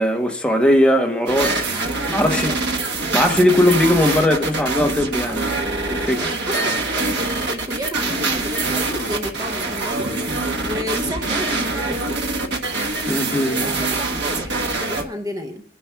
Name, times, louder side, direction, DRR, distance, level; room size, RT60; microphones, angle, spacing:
voice 1, 0.0-1.6 2.1-2.6 3.1-5.5 5.8-6.3 13.1-13.7, left 1 dB, 5° left, 0.8 m, -19 dB
sound 1, 1.3-15.0, right 3 dB, 75° right, 1.2 m, -24 dB
voice 2, 1.7-2.6 6.2-10.1 10.4-12.2 13.6-15.6, left 1 dB, 20° right, 0.7 m, -31 dB
27.0 x 10.0 x 2.2 m
head